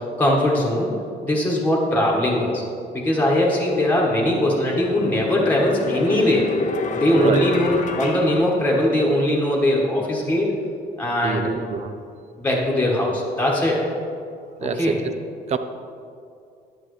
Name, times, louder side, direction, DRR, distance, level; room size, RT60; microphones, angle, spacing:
voice 1, 0.2-0.9 1.2-2.6 2.9-6.5 6.9-10.5 11.0-11.5 12.4-13.8 14.6-15.0, left 1 dB, 10° left, -3 dB, 1.5 m, -20 dB
sound 1, 4.0-9.2, left 4 dB, 45° left, 0.8 m, -30 dB
voice 2, 11.2-11.9 14.6-15.1 15.5-15.6, right 6 dB, 40° right, 9 dB, 0.6 m, -25 dB
11.0 x 7.5 x 3.2 m, 2.5 s
cardioid pair, 110°, 17 cm